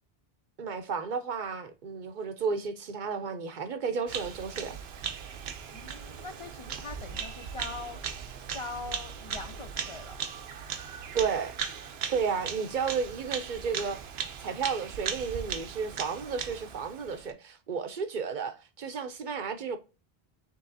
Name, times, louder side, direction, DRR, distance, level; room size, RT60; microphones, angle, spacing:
voice 1, 0.6-4.8 11.1-11.6 12.1-14.0 14.4-19.8, right 5 dB, 55° right, 0.7 m, -32 dB
Bird vocalization bird call bird song, 4.1-17.3, right 7 dB, 85° right, 0.9 m, -38 dB
voice 2, 5.7-8.1 8.5-10.2, left 3 dB, 50° left, 0.3 m, -42 dB
5.4 x 3.3 x 2.6 m
omnidirectional pair, 1.0 m